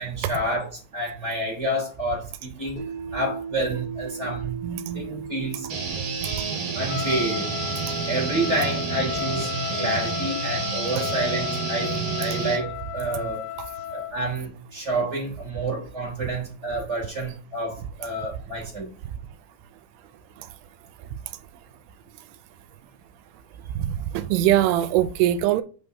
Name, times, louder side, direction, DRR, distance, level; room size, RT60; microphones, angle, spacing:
voice 1, 0.0-2.8 3.1-4.6 4.9-5.7 6.7-7.5 8.1-13.5 13.9-18.9, right 1 dB, 20° right, -4 dB, 3.1 m, -29 dB
sound 1, 2.8-14.9, right 5 dB, 30° left, 2.4 m, -40 dB
voice 2, 4.6-5.0 23.8-25.6, right 12 dB, 85° right, 11 dB, 2.5 m, -22 dB
sound 2, 5.7-12.6, right 5 dB, 55° right, 3.2 m, -29 dB
Trumpet, 6.8-14.2, left 13 dB, 80° left, 2.5 m, -33 dB
8.5 x 5.3 x 2.7 m, 0.38 s
omnidirectional pair, 4.7 m